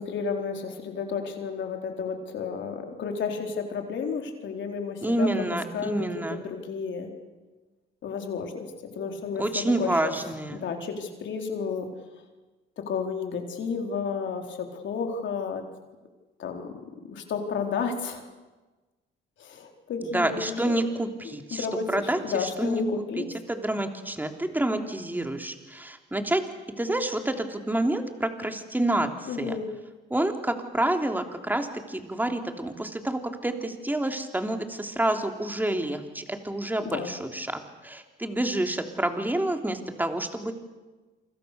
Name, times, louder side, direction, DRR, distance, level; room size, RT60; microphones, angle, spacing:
voice 1, 0.0-7.1 8.0-8.7 9.0-11.9 12.9-15.6 16.4-16.7 17.1-18.2 19.4-20.8 21.2-23.3 29.3-29.7 36.8-37.2, left 5 dB, 70° left, 3 dB, 4.2 m, -32 dB
voice 2, 5.0-6.3 9.4-10.5 20.1-21.6 21.9-22.2 22.6-22.8 23.5-25.5 25.8-26.4 26.8-29.1 29.4-29.5 30.1-31.7 32.0-37.5 37.8-40.5, right 1 dB, 10° right, 5 dB, 3.2 m, -28 dB
28.5 x 25.5 x 7.0 m, 1.2 s
cardioid pair, 90°, 20 cm